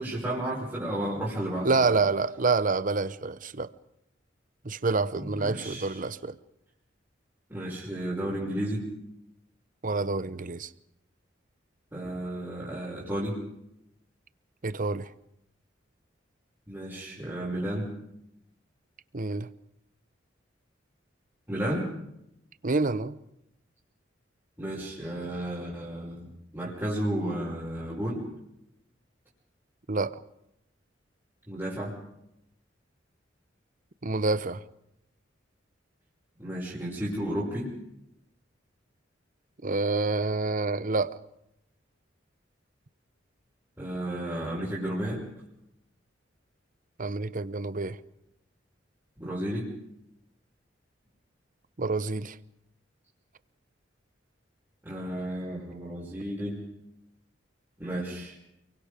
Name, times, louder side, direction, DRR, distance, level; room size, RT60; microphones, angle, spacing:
voice 1, 0.0-1.9 5.2-6.0 7.5-8.9 11.9-13.4 16.7-17.9 21.5-21.9 24.6-28.2 31.5-32.0 36.4-37.7 43.8-45.2 49.2-49.7 54.8-56.6 57.8-58.4, right 1 dB, 15° right, 5.9 m, -32 dB
voice 2, 1.6-3.7 4.6-6.4 9.8-10.7 14.6-15.1 19.1-19.5 22.6-23.2 29.9-30.2 34.0-34.6 39.6-41.1 47.0-48.0 51.8-52.4, right 3 dB, 45° right, 0.9 m, -27 dB
29.5 x 23.5 x 5.1 m
head